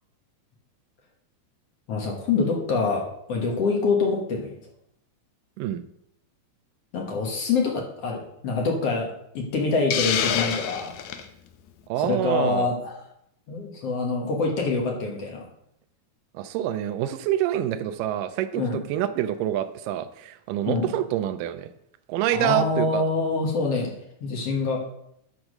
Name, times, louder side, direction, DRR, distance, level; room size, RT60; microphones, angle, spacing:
voice 1, 1.9-4.6 6.9-9.1 9.3-11.1 12.0-13.0 13.5-15.5 18.6-18.8 20.7-20.9 22.3-23.9 24.2-24.8, left 4 dB, 60° left, 1 dB, 1.7 m, -25 dB
Hiss, 9.9-11.3, left 8 dB, 85° left, 1.6 m, -26 dB
voice 2, 11.9-12.7 16.3-21.7 22.1-23.0, right 12 dB, 90° right, 10 dB, 1.9 m, -26 dB
8.0 x 6.1 x 6.4 m, 0.77 s
omnidirectional pair, 4.4 m